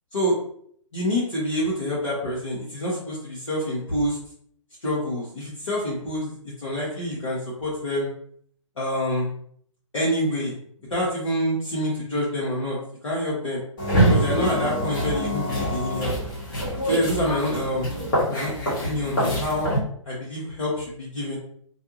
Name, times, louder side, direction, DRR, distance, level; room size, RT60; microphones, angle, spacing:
voice 1, 0.9-4.2 4.8-6.3 6.6-8.1 8.8-9.3 9.9-10.6 10.9-12.8 13.0-13.6 14.1-16.1 16.9-17.9 18.3-19.7 20.0-21.4, equal, 65° left, -7 dB, 1.1 m, -26 dB
sound 1, 13.8-19.8, right 1 dB, 40° left, 1.1 m, -25 dB
2.6 x 2.2 x 2.8 m, 0.62 s
figure-of-eight pair, 130°, 17 cm